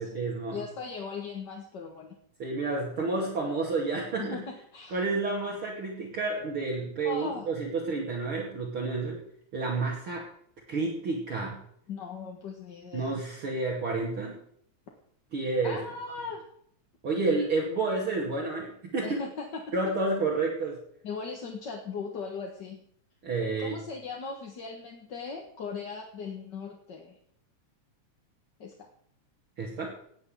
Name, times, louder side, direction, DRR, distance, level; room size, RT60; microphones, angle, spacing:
voice 1, 0.0-0.6 2.4-4.4 4.9-9.2 9.5-10.3 10.7-11.6 12.9-14.3 15.3-15.8 17.0-19.2 19.7-20.8 23.2-23.8 29.6-29.9, right 3 dB, 45° right, -3 dB, 3.2 m, -30 dB
voice 2, 0.5-2.2 4.2-5.0 7.0-7.5 11.9-13.2 15.6-16.5 19.0-19.6 21.0-22.8 23.6-27.2 28.6-28.9, left 5 dB, 45° left, 1 dB, 1.8 m, -38 dB
18.0 x 6.4 x 7.8 m, 0.65 s
omnidirectional pair, 3.4 m